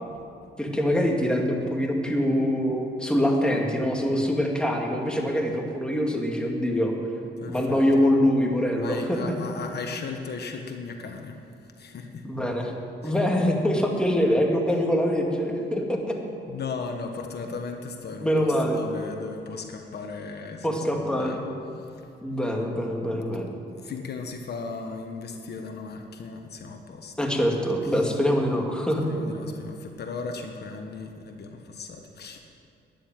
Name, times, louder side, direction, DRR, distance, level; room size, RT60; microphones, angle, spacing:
voice 1, 0.6-6.9 7.5-9.2 12.2-12.7 13.0-16.2 18.2-18.8 20.6-21.4 22.2-23.5 27.2-29.0, equal, 5° left, 0 dB, 2.5 m, -24 dB
voice 2, 7.4-8.0 8.8-11.4 11.8-12.2 13.0-13.1 16.5-21.4 21.9-22.1 23.8-27.1 27.9-28.0 29.0-32.4, left 4 dB, 55° left, 4 dB, 1.3 m, -36 dB
13.0 x 10.5 x 9.1 m, 2.6 s
cardioid pair, 90°, 20 cm